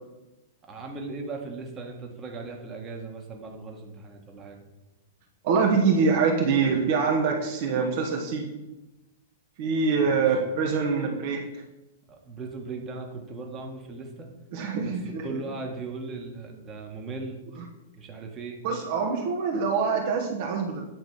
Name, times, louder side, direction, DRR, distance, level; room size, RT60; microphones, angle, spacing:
voice 1, 0.6-4.6 10.0-10.4 12.1-14.3 14.8-14.9 15.2-17.4 17.9-18.6, right 3 dB, 20° right, 1 dB, 1.5 m, -38 dB
voice 2, 5.4-8.5 9.6-11.4 14.5-15.4 18.6-20.9, right 5 dB, 45° right, 0 dB, 1.2 m, -24 dB
9.2 x 5.1 x 4.9 m, 1.0 s
figure-of-eight pair, 100°, 0 cm